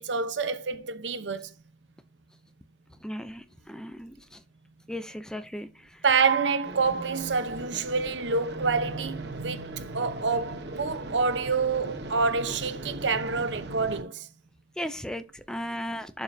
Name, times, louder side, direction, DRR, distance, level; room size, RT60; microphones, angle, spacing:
voice 1, 0.0-1.5 6.0-9.7 9.9-14.3, right 4 dB, 90° right, 0.9 m, -27 dB
voice 2, 3.0-4.1 4.9-5.7 14.8-16.2, equal, 5° left, 0.5 m, -36 dB
sound 1, 6.6-14.0, right 2 dB, 70° right, 1.3 m, -38 dB
11.0 x 5.0 x 2.7 m
head